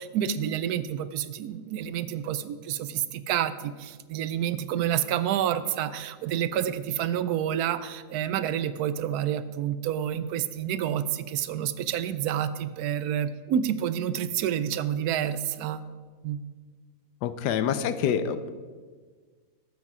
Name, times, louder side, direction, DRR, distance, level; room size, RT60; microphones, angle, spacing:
voice 1, 0.0-15.8 16.2-16.4, right 10 dB, 75° right, 14 dB, 1.1 m, -29 dB
voice 2, 17.2-18.5, left 8 dB, 85° left, 12 dB, 1.3 m, -26 dB
12.5 x 8.3 x 4.8 m, 1.5 s
omnidirectional pair, 1.7 m